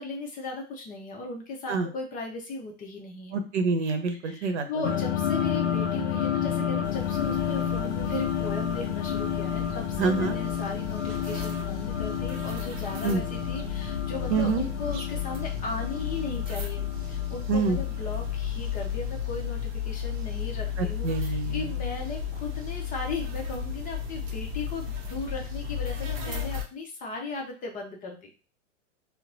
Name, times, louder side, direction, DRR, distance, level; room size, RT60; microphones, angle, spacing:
voice 1, 0.0-3.4 4.2-28.3, left 3 dB, 20° left, 1 dB, 0.7 m, -37 dB
voice 2, 3.3-4.7 10.0-10.4 13.0-13.2 14.3-14.6 17.5-17.8 20.8-21.6, right 4 dB, 65° right, 6 dB, 0.9 m, -26 dB
sound 1, 4.8-18.8, left 9 dB, 65° left, 0.6 m, -31 dB
sound 2, 6.8-26.6, left 8 dB, 35° right, 0.8 m, -34 dB
4.1 x 2.1 x 2.6 m, 0.34 s
hypercardioid pair, 110°, 38 cm